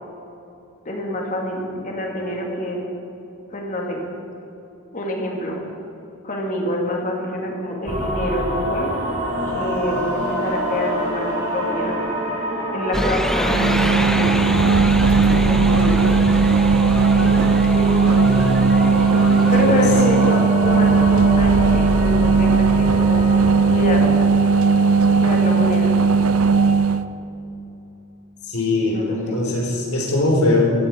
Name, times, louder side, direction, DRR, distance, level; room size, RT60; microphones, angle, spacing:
voice 1, 0.8-2.8 3.5-4.0 4.9-5.6 6.2-8.9 9.4-12.0 12.7-14.5 15.2-16.1 17.2-18.3 19.5-23.3 23.7-24.1 25.2-25.9 28.8-29.4, left 1 dB, 35° left, 0 dB, 2.5 m, -26 dB
sound 1, 7.9-24.0, equal, 30° right, 2.9 m, -26 dB
sound 2, 12.9-20.3, equal, ahead, 0.5 m, -25 dB
sound 3, 13.5-27.0, right 5 dB, 70° right, 0.6 m, -17 dB
voice 2, 20.0-20.5 28.4-30.7, left 2 dB, 80° left, -1 dB, 3.8 m, -21 dB
17.5 x 13.5 x 4.7 m, 3.0 s
head